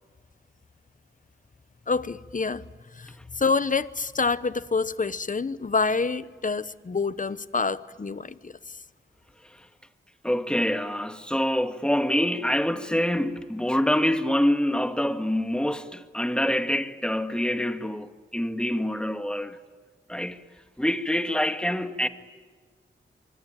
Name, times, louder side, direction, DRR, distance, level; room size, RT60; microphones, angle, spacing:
voice 1, 1.9-2.6 2.9-8.8, left 4 dB, 40° left, 1.0 m, -27 dB
voice 2, 10.2-19.6 20.1-20.4 20.8-22.1, left 1 dB, 5° left, 1.8 m, -26 dB
26.5 x 24.0 x 9.1 m
cardioid pair, 60°, 21 cm